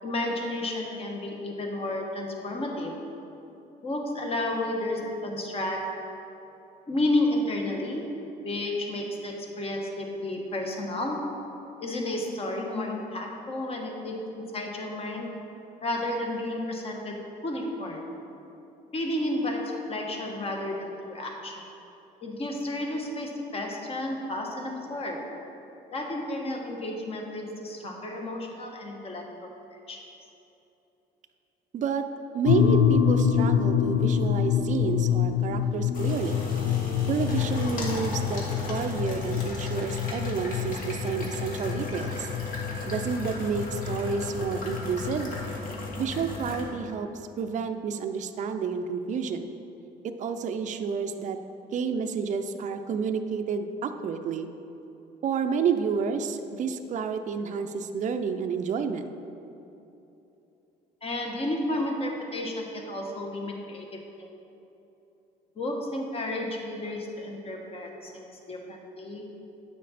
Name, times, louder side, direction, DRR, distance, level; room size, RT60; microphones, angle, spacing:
voice 1, 0.0-3.0 3.8-6.1 6.9-8.2 8.4-11.4 11.8-15.3 15.8-18.1 18.9-21.7 22.2-25.4 25.9-29.5 29.9-30.2 61.0-64.3 65.6-69.3, left 1 dB, 35° left, 1 dB, 1.3 m, -32 dB
voice 2, 31.7-32.1 32.3-36.5 37.1-42.3 42.9-45.3 46.0-47.1 47.4-49.5 50.0-51.4 51.7-54.5 55.2-59.1, right 6 dB, 45° right, 7 dB, 0.5 m, -30 dB
sound 1, 32.4-45.5, left 8 dB, 70° left, 0.5 m, -26 dB
sound 2, 34.0-46.6, left 3 dB, 55° left, 1.6 m, -35 dB
9.2 x 6.3 x 4.2 m, 2.9 s
cardioid pair, 110°, 17 cm